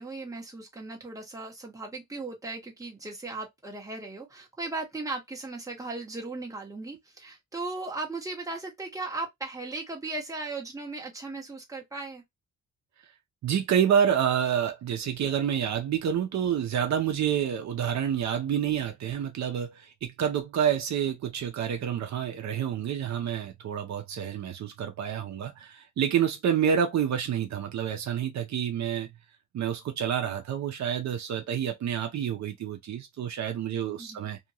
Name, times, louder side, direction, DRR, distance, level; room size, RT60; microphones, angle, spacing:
voice 1, 0.0-12.2 34.0-34.3, right 3 dB, 10° right, 1.1 m, -37 dB
voice 2, 13.4-29.1 29.5-34.4, right 8 dB, 65° right, 0.7 m, -28 dB
2.8 x 2.5 x 2.9 m
cardioid pair, 120°, 31 cm